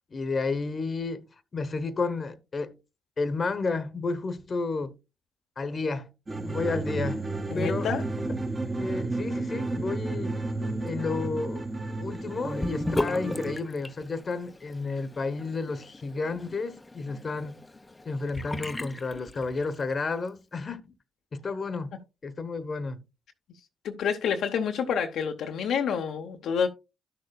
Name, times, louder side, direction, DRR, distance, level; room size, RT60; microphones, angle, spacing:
voice 1, 0.1-1.3 1.5-2.7 3.2-4.9 5.6-6.1 6.4-7.2 7.5-7.9 8.8-10.4 10.8-11.6 12.0-17.6 18.0-20.9 21.3-21.9 22.2-23.0, left 4 dB, 45° left, 1.1 m, -31 dB
sound 1, 6.3-13.6, right 2 dB, 35° right, 2.4 m, -32 dB
voice 2, 7.5-8.0 23.8-26.7, left 7 dB, 75° left, 0.8 m, -28 dB
Sink (filling or washing) / Bathtub (filling or washing), 12.6-19.9, left 2 dB, 20° left, 0.8 m, -37 dB
12.0 x 6.7 x 2.3 m
supercardioid pair, 50°, 0 cm